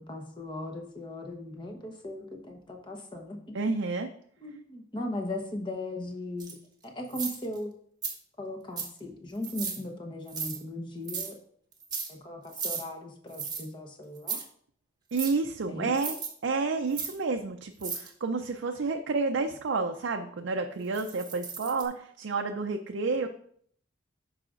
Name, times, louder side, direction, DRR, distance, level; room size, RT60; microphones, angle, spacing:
voice 1, 0.0-3.6 4.4-6.5 6.8-7.7 8.4-11.4 12.1-14.4 15.7-15.9, left 1 dB, 25° left, 2 dB, 1.0 m, -38 dB
voice 2, 3.5-4.1 15.1-16.2 16.4-23.3, right 4 dB, 75° right, 4 dB, 0.5 m, -30 dB
sound 1, 6.4-6.5 7.1-7.6 8.0-8.1 8.8-9.0 9.4-9.8 10.3-10.6 11.1-11.3 11.7-12.1 12.5-12.8 13.3-13.6 14.2-14.4 15.2-15.3 16.0-16.3 16.9-17.1 17.8-18.1 20.9-21.9, right 6 dB, 20° right, 1.0 m, -35 dB
11.5 x 4.9 x 2.5 m, 0.63 s
head